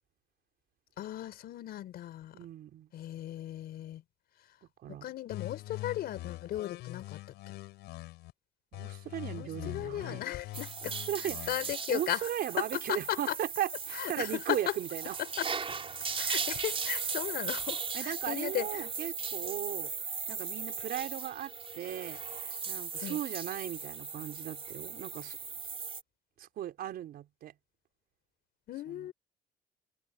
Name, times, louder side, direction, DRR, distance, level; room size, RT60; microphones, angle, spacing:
voice 1, 1.0-2.3 2.9-4.0 4.9-7.2 9.4-11.0 11.2-12.3 12.6-13.3 13.9-14.6 15.4-15.5 16.2-18.9 23.0-23.2 28.7-29.1, left 12 dB, 70° left, 4.8 m, -36 dB
voice 2, 2.3-2.9 4.8-5.1 8.7-10.2 10.9-11.5 11.9-15.2 17.9-19.9 20.3-25.4 26.4-27.5 28.9-29.1, right 12 dB, 65° right, 4.2 m, -37 dB
sound 1, 5.3-8.3 8.7-11.7, left 17 dB, 85° left, 6.4 m, -43 dB
sound 2, 10.5-26.0, right 5 dB, 35° right, 4.1 m, -38 dB
cardioid pair, 110°, 17 cm